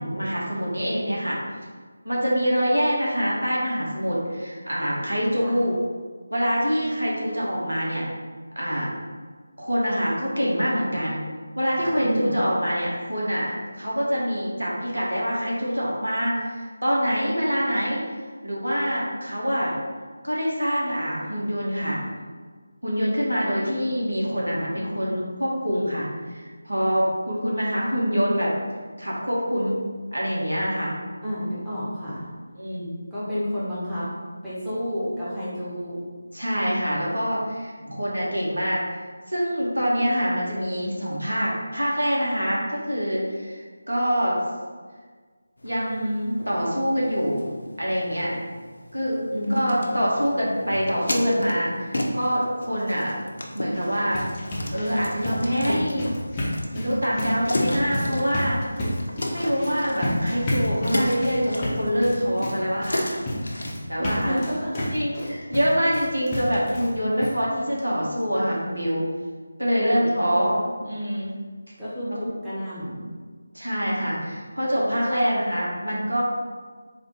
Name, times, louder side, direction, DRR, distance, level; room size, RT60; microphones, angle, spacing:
voice 1, 0.0-1.4 2.0-5.8 6.3-8.1 8.5-8.9 9.6-11.3 11.5-18.0 18.4-19.8 20.2-22.0 22.8-28.5 29.0-29.8 30.1-31.0 32.5-32.9 36.3-39.0 39.3-44.4 45.6-47.4 47.8-48.3 48.9-49.2 49.5-53.1 53.5-54.2 54.7-56.1 56.7-58.6 59.3-63.1 63.9-64.3 64.9-69.0 69.6-71.3 73.5-76.2, equal, 80° right, -5 dB, 1.4 m, -25 dB
voice 2, 12.0-12.4 31.2-32.3 33.1-34.1 34.4-36.1 49.3-49.9 64.0-64.8 69.7-70.4 71.8-73.1, equal, 5° right, -15 dB, 1.0 m, -30 dB
sound 1, 45.6-63.7, left 1 dB, 60° left, 0.7 m, -34 dB
sound 2, 53.7-67.0 67.2-67.3 67.8-67.9 68.2-68.3, left 1 dB, 20° left, 0.7 m, -31 dB
4.1 x 2.6 x 4.2 m, 1.5 s
figure-of-eight pair, 160°, 0 cm